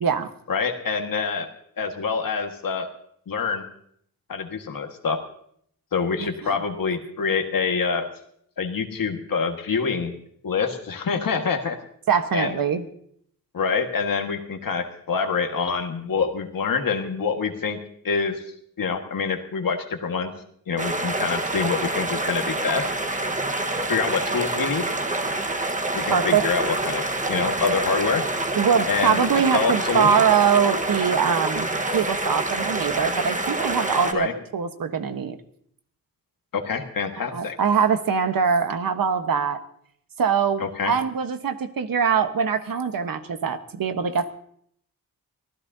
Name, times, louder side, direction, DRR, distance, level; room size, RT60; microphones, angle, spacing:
voice 1, 0.5-1.5 1.8-2.9 3.3-3.6 4.3-5.2 5.9-8.0 8.6-10.1 10.4-11.8 12.3-12.6 13.5-17.8 18.0-18.4 18.8-20.3 20.7-22.9 23.9-24.8 25.9-28.2 28.9-29.2 29.5-30.3 34.1-34.3 36.5-37.6 40.6-40.9, left 5 dB, 70° left, 4 dB, 1.7 m, -26 dB
voice 2, 12.1-12.8 26.1-26.4 28.6-34.3 34.5-35.4 37.2-39.6 40.2-44.3, right 7 dB, 70° right, 8 dB, 1.3 m, -23 dB
sound 1, 20.8-34.1, right 2 dB, 20° right, 1.4 m, -27 dB
25.0 x 15.5 x 2.8 m, 0.66 s
cardioid pair, 80°, 35 cm